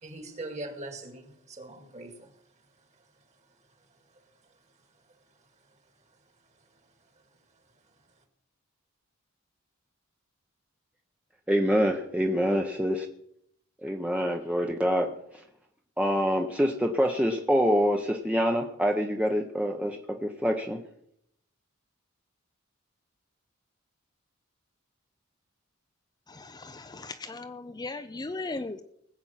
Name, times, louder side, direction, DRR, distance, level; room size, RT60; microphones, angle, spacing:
voice 1, 0.0-2.4, right 2 dB, 35° right, 6 dB, 2.0 m, -41 dB
voice 2, 11.5-13.1 13.8-15.1 16.0-20.8, equal, 5° right, 2 dB, 0.8 m, -26 dB
voice 3, 26.3-28.8, left 3 dB, 20° left, 9 dB, 0.5 m, -37 dB
20.0 x 7.7 x 5.7 m, 0.73 s
head